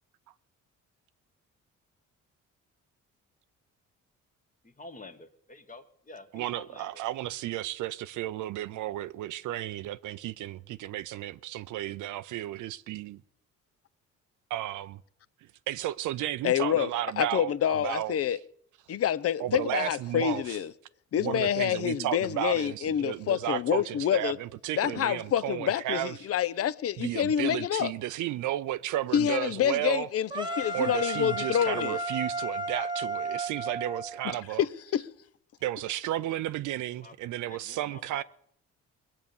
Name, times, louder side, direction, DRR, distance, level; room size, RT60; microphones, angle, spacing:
voice 1, 4.6-7.0 37.0-37.2 37.4-38.2, left 3 dB, 25° left, 1.4 m, -48 dB
voice 2, 6.3-13.2 14.5-15.0 15.7-18.2 19.4-20.6 21.2-26.1 27.0-30.1 30.7-34.6 35.6-38.2, right 14 dB, 80° right, 0.5 m, -33 dB
voice 3, 16.4-16.9 17.2-18.4 18.9-20.7 21.1-24.4 24.8-27.9 29.1-32.0 34.6-35.1, left 10 dB, 50° left, 0.6 m, -27 dB
sound 1, 30.3-34.4, right 2 dB, 15° right, 1.2 m, -33 dB
20.0 x 7.9 x 7.1 m
cardioid pair, 90°, 30 cm